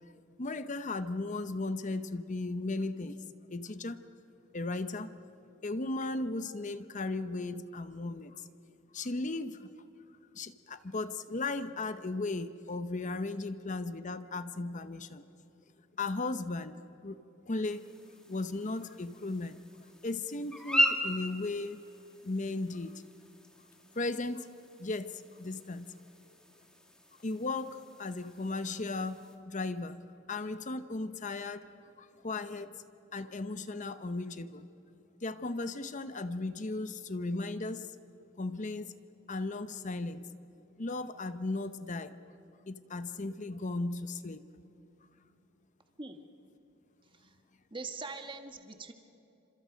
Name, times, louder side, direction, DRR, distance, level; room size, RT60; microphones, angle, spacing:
voice 1, 0.4-4.0 4.5-5.2 5.6-8.5 8.9-9.7 10.3-15.3 16.0-16.8 17.0-17.2 17.5-17.9 18.3-19.6 20.0-21.8 22.2-23.0 23.9-24.5 24.8-25.9 27.2-30.0 30.3-31.7 32.0-32.8 33.1-34.7 35.2-38.0 38.4-38.9 39.3-40.2 40.8-42.1 42.7-44.4, left 2 dB, 35° left, 11 dB, 0.8 m, -36 dB
sound 1, 17.6-29.4, equal, 5° left, 2.0 m, -38 dB
voice 2, 47.7-48.9, right 3 dB, 25° right, 5 dB, 1.5 m, -42 dB
29.0 x 26.5 x 5.2 m, 2.9 s
head